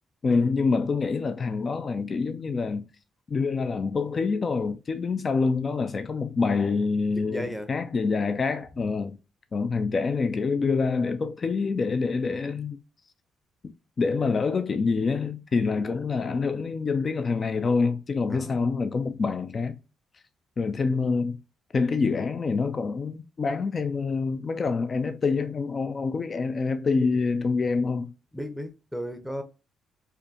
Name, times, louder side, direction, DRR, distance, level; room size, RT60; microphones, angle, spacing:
voice 1, 0.2-2.9 3.3-9.2 9.5-12.8 14.0-19.8 20.6-21.4 21.7-28.1, left 4 dB, 40° left, 0.3 m, -26 dB
voice 2, 7.1-7.7 18.3-18.6 28.3-29.4, equal, ahead, 0.6 m, -35 dB
4.3 x 2.6 x 2.7 m
cardioid pair, 90°, 0 cm